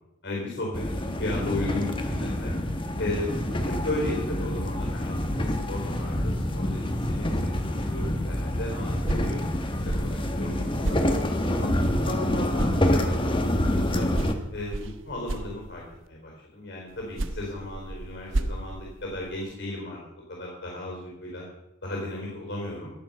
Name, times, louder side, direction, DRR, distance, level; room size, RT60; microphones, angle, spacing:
voice 1, 0.2-2.5 3.0-11.0 11.5-14.1 14.5-20.0 20.3-21.5 21.8-22.9, left 1 dB, 65° left, -2 dB, 4.3 m, -35 dB
sound 1, 0.7-14.3, left 1 dB, 25° left, 1.2 m, -27 dB
sound 2, 8.8-12.2 12.5-16.1 16.9-19.6, right 2 dB, 80° right, 1.0 m, -35 dB
18.5 x 7.5 x 5.5 m, 0.92 s
head